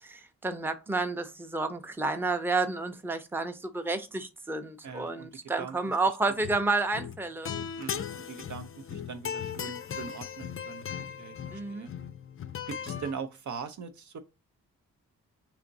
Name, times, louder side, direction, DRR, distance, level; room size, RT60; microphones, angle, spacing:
voice 1, 0.0-7.5 11.5-11.9, right 3 dB, 5° right, 0.6 m, -30 dB
voice 2, 4.8-5.3 5.6-5.8 7.8-11.9 12.7-14.2, right 6 dB, 55° right, 0.6 m, -41 dB
sound 1, 6.4-6.7 6.9-13.1, left 8 dB, 40° left, 0.4 m, -38 dB
2.8 x 2.4 x 3.8 m
supercardioid pair, 45°, 35 cm